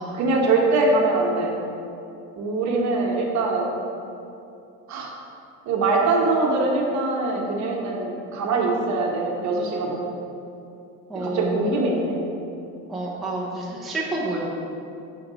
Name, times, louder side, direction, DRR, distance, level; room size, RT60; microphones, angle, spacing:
voice 1, 0.0-1.5 2.4-3.7 4.9-5.1 5.7-10.1 11.1-12.2, right 3 dB, 45° right, 0 dB, 1.0 m, -23 dB
voice 2, 11.1-11.6 12.9-14.5, right 2 dB, ahead, -6 dB, 0.6 m, -29 dB
5.2 x 4.6 x 5.0 m, 2.6 s
cardioid pair, 145°, 38 cm